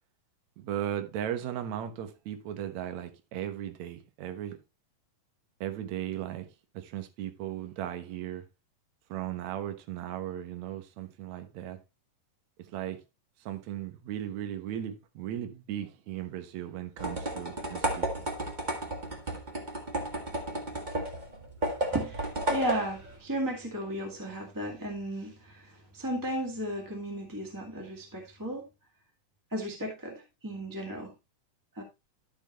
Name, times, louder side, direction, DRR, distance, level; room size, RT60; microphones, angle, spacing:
voice 1, 0.6-4.6 5.6-6.5 6.7-8.5 9.1-11.8 12.7-13.0 13.4-18.3, right 11 dB, 65° right, 2.2 m, -37 dB
sound 1, 17.0-23.2, right 1 dB, 80° right, 0.4 m, -33 dB
voice 2, 21.9-28.7 29.5-31.1 31.7-31.8, right 1 dB, 10° right, 0.9 m, -35 dB
12.5 x 6.3 x 3.0 m
omnidirectional pair, 4.1 m